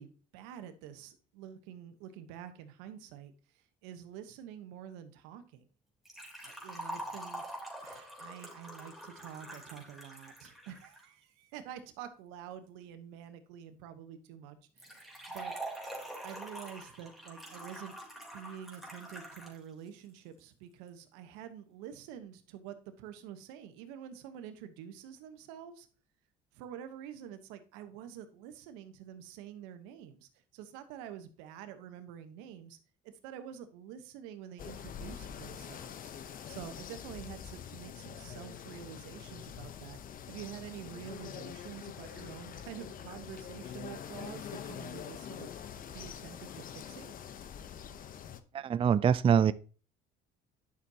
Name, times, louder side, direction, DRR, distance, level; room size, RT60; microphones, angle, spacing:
voice 1, 0.0-5.7 6.4-7.5 7.8-15.5 16.2-18.0 18.3-25.9 26.5-32.8 33.2-36.1 36.5-40.0 40.3-45.5 45.9-47.1, right 9 dB, 90° right, 1.1 m, -47 dB
Liquid, 6.0-11.0 14.8-19.6 19.9-20.0 20.9-21.0, right 1 dB, ahead, 3.4 m, -44 dB
sound 1, 34.6-48.4, left 8 dB, 50° left, 0.8 m, -45 dB
voice 2, 48.5-49.5, right 8 dB, 30° right, 0.4 m, -24 dB
11.0 x 6.3 x 2.8 m
supercardioid pair, 90°, 19 cm